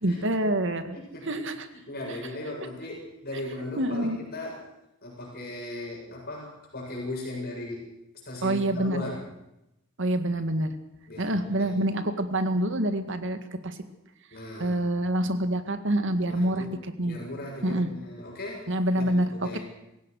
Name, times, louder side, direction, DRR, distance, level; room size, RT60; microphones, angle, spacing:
voice 1, 0.0-1.0 1.3-1.7 3.8-4.2 8.4-9.1 10.0-10.7 11.2-13.4 13.6-13.8 14.6-16.7 17.0-17.2 17.6-17.9 18.7-19.6, right 1 dB, 65° right, 9 dB, 2.0 m, -26 dB
voice 2, 0.9-1.4 1.7-4.7 5.0-7.9 8.2-9.2 11.1-11.8 14.3-15.1 16.3-16.8 17.0-19.6, left 1 dB, 50° left, -2 dB, 7.6 m, -38 dB
27.0 x 16.0 x 6.5 m, 0.90 s
head